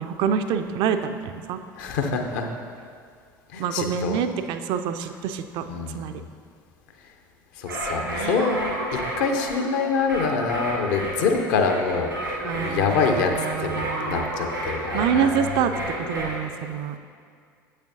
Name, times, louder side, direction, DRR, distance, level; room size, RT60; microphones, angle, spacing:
voice 1, 0.0-1.6 3.6-5.7 5.9-6.2 7.8-8.9 12.4-14.3 14.9-15.7 16.0-17.0, right 8 dB, 50° right, 8 dB, 0.3 m, -27 dB
voice 2, 1.8-2.5 3.5-4.2 5.7-6.2 7.6-8.6 8.9-13.7 14.0-15.5, left 5 dB, 60° left, 4 dB, 0.6 m, -25 dB
sound 1, 7.6-16.4, equal, 90° right, 1.4 m, -31 dB
8.0 x 6.4 x 2.6 m, 2.1 s
figure-of-eight pair, 65°, 11 cm